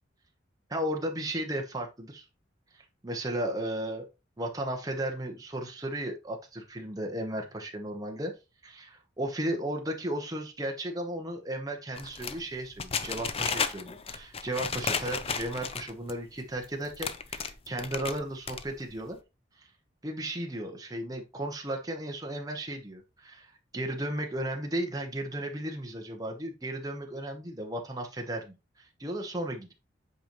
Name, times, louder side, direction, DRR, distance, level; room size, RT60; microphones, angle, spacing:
voice 1, 0.7-2.3 2.7-4.1 4.4-8.3 8.6-19.2 19.6-19.7 20.0-29.7, right 1 dB, 20° right, 2 dB, 1.0 m, -35 dB
sound 1, 11.9-16.1 16.6-16.7 16.9-18.2 18.5-18.9, left 6 dB, 30° left, 0.6 m, -33 dB
7.9 x 5.2 x 3.1 m, 0.26 s
head